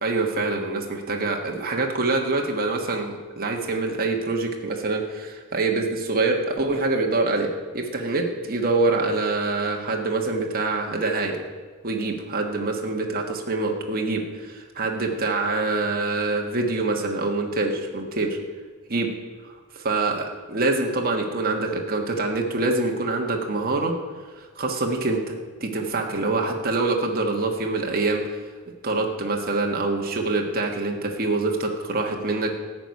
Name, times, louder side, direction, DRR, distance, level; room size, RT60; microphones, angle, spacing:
voice 1, 0.0-11.4 11.8-18.4 18.9-19.1 19.4-23.9 24.3-28.4 28.8-32.6, right 3 dB, 45° right, 1 dB, 1.5 m, -25 dB
14.5 x 6.1 x 9.5 m, 1.5 s
head